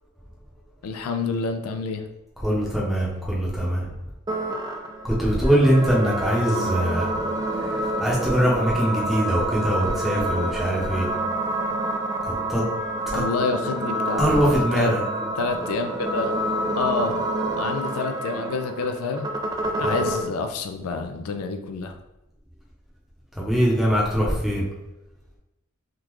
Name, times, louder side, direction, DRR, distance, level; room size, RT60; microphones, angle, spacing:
voice 1, 0.8-2.0 13.1-15.0 15.4-16.3 16.8-17.2 17.5-19.3 19.8-22.0, left 4 dB, 90° left, 6 dB, 0.4 m, -28 dB
voice 2, 2.4-3.9 5.0-7.2 7.5-11.1 12.2-12.6 13.1-13.2 14.2-15.0 19.8-20.0 23.3-24.6, equal, ahead, -5 dB, 0.8 m, -22 dB
sound 1, 4.3-20.3, right 1 dB, 20° right, 0.3 m, -28 dB
3.6 x 2.4 x 3.0 m, 0.97 s
head